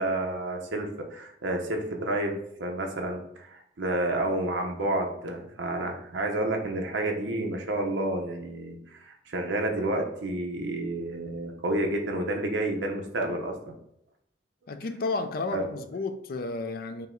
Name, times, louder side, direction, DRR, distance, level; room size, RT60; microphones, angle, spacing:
voice 1, 0.0-13.7 15.5-15.7, right 1 dB, 80° right, 0.8 m, -30 dB
voice 2, 14.7-17.1, left 3 dB, 50° left, 0.4 m, -32 dB
5.4 x 2.1 x 3.7 m
head